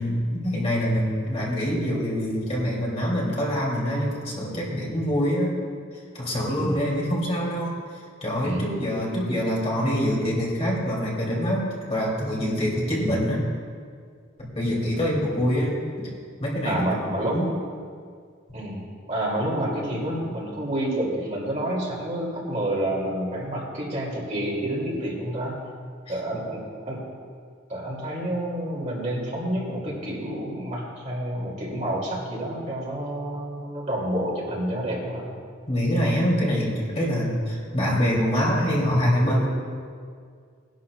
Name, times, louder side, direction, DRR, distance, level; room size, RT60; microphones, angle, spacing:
voice 1, 0.0-5.5 6.1-7.7 8.2-13.4 14.5-16.1 16.4-17.0 17.3-17.5 35.7-39.5, equal, 30° left, -4 dB, 3.0 m, -25 dB
voice 2, 6.5-6.8 8.4-8.8 15.0-15.1 16.6-17.4 18.5-25.5 26.1-27.0 27.7-35.3, right 1 dB, 35° right, -3 dB, 2.5 m, -29 dB
19.0 x 11.5 x 2.4 m, 2.1 s
head